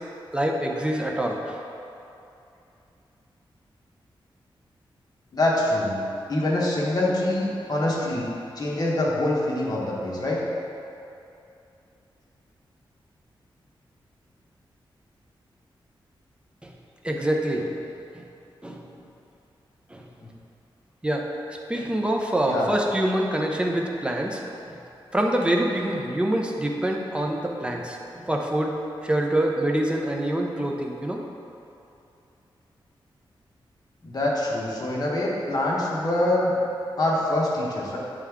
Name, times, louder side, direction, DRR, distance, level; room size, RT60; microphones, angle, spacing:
voice 1, 0.3-1.6 16.6-16.7 17.0-17.8 18.1-18.2 18.6-18.9 19.9-20.0 21.0-21.3 21.7-24.4 25.1-28.7 29.0-31.2, right 1 dB, 10° right, 0 dB, 0.6 m, -25 dB
voice 2, 5.3-6.0 6.3-8.3 8.6-10.4 20.2-20.3 22.5-22.7 34.0-36.5 37.0-38.0, left 1 dB, 45° left, -4 dB, 1.2 m, -25 dB
8.4 x 3.5 x 3.6 m, 2.7 s
wide cardioid pair, 100°, 9 cm